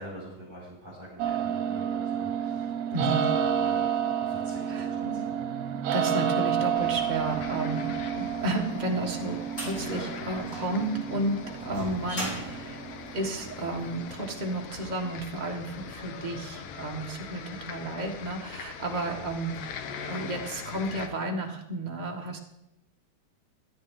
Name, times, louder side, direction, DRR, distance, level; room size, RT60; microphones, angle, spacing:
voice 1, 0.0-3.0 3.3-3.9 4.2-5.5 17.5-17.7 18.8-18.9, right 1 dB, 15° right, -8 dB, 5.1 m, -45 dB
sound 1, 1.2-15.1, right 8 dB, 70° right, 2.0 m, -31 dB
voice 2, 2.9-3.3 4.7-5.2 5.9-12.8 13.1-22.4, right 2 dB, 50° right, 1 dB, 0.5 m, -32 dB
sound 2, 6.7-21.1, left 7 dB, 65° left, 1.7 m, -42 dB
sound 3, 8.5-13.8, equal, 35° left, 4.2 m, -39 dB
17.5 x 12.0 x 3.7 m, 0.88 s
omnidirectional pair, 3.3 m